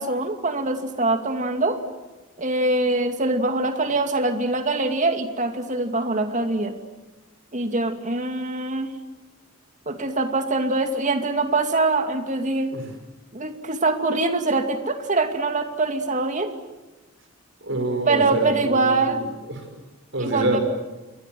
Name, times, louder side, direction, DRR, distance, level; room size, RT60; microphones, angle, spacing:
voice 1, 0.0-1.8 2.4-6.7 7.5-8.9 9.9-12.7 13.3-16.5 18.1-19.2 20.2-20.6, right 2 dB, 35° right, 7 dB, 2.5 m, -23 dB
voice 2, 17.6-19.6 20.1-20.6, right 1 dB, 60° right, 6 dB, 5.6 m, -27 dB
29.5 x 23.0 x 7.8 m, 1.1 s
head